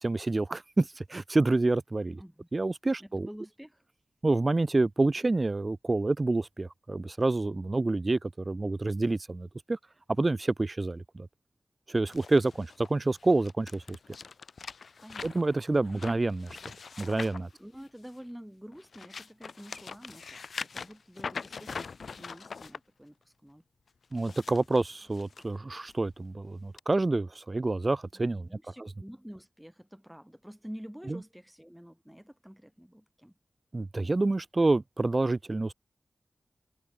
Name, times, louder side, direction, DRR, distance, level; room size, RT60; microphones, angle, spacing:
voice 1, 0.0-2.2 2.5-3.3 4.2-9.8 10.2-11.3 11.9-14.0 15.2-16.6 17.0-17.5 24.1-28.5 31.1-31.2 33.7-35.7, right 2 dB, 40° right, 0.6 m, -28 dB
voice 2, 2.2-2.5 3.0-3.8 14.2-14.3 15.0-15.5 17.6-20.5 20.7-23.6 28.1-33.4, equal, 5° right, 2.4 m, -48 dB
sound 1, 12.1-18.3 18.7-22.8 24.0-25.4 25.9-26.1 26.8-26.9, left 5 dB, 80° left, 2.6 m, -43 dB
cardioid pair, 55°, 0 cm